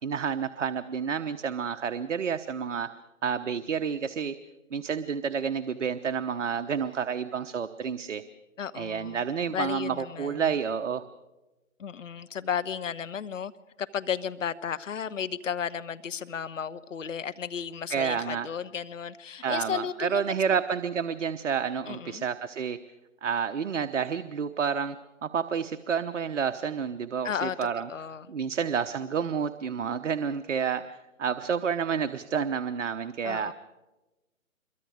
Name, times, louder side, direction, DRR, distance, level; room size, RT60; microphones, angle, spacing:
voice 1, 0.0-2.9 3.2-4.4 4.7-8.2 8.7-11.0 17.9-18.5 19.4-22.8 23.2-25.0 25.2-27.9 28.3-33.5, right 7 dB, 60° right, 9 dB, 1.0 m, -29 dB
voice 2, 8.6-9.2 9.5-10.5 11.8-13.5 13.8-20.6 21.9-22.3 27.2-28.3 33.2-33.5, left 7 dB, 65° left, 13 dB, 1.2 m, -34 dB
26.0 x 23.0 x 4.9 m, 1.1 s
figure-of-eight pair, 145°, 41 cm